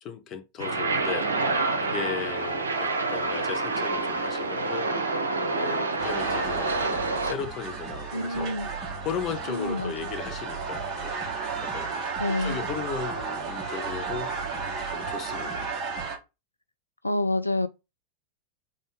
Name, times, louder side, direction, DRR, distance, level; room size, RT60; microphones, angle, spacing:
voice 1, 0.0-1.3 1.8-4.9 5.5-8.6 9.0-11.2 11.6-14.3 14.9-15.7, left 7 dB, 30° left, 0.8 m, -36 dB
sound 1, 0.6-7.3, right 3 dB, 70° right, 0.8 m, -27 dB
sound 2, 6.0-16.2, right 5 dB, 30° right, 1.8 m, -33 dB
voice 2, 8.1-8.7 9.5-9.9 12.2-12.6 17.0-17.7, left 1 dB, 85° left, 0.3 m, -27 dB
3.7 x 3.7 x 3.7 m
figure-of-eight pair, 90°, 0 cm